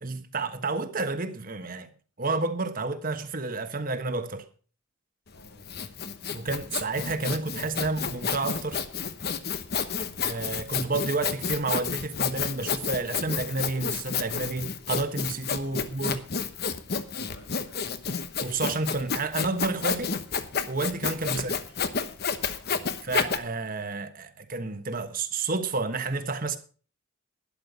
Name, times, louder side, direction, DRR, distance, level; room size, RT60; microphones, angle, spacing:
voice 1, 0.0-1.9 2.2-4.5 6.3-8.8 10.2-16.2 18.4-20.2 20.7-21.5 23.0-26.6, right 3 dB, 40° right, 1.3 m, -30 dB
voice 2, 5.3-5.9 10.0-10.2 15.6-15.9 17.1-17.8 21.3-21.5 22.5-22.9, left 1 dB, 70° left, 5.1 m, -52 dB
Sawing, 5.3-23.4, left 6 dB, 50° left, 1.0 m, -30 dB
12.0 x 10.5 x 5.1 m
head